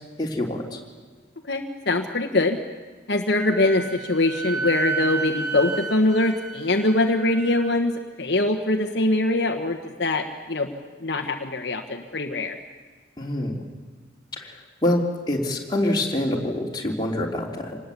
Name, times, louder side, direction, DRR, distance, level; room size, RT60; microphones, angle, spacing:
voice 1, 0.2-0.8 13.2-13.6 14.3-15.0 15.3-17.8, left 1 dB, 20° left, -1 dB, 3.4 m, -26 dB
voice 2, 1.5-2.6 3.1-10.7 11.0-12.6, left 2 dB, 60° left, 4 dB, 1.3 m, -23 dB
Wind instrument woodwind instrument, 3.3-7.8, right 4 dB, 15° right, 1.6 m, -31 dB
26.5 x 19.5 x 8.5 m, 1.4 s
head